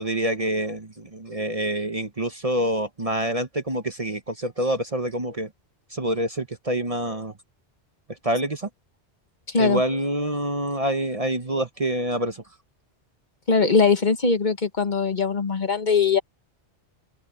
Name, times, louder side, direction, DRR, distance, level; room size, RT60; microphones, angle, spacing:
voice 1, 0.0-5.5 5.9-7.3 8.2-8.7 9.6-12.4, right 1 dB, 35° right, 1.0 m, -26 dB
voice 2, 9.5-9.8 13.5-16.2, left 5 dB, 40° left, 1.4 m, -21 dB
omnidirectional pair, 1.2 m